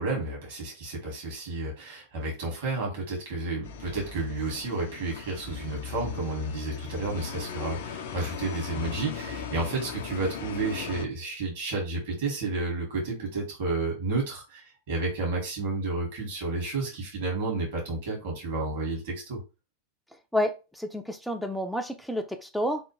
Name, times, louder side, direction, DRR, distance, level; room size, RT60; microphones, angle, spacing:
voice 1, 0.0-19.4, right 3 dB, 55° right, -1 dB, 2.0 m, -31 dB
sound 1, 3.6-11.1, left 7 dB, 55° left, 0.4 m, -38 dB
voice 2, 20.3-22.8, equal, ahead, 6 dB, 0.4 m, -30 dB
3.4 x 2.4 x 3.1 m, 0.30 s
figure-of-eight pair, 90°, 0 cm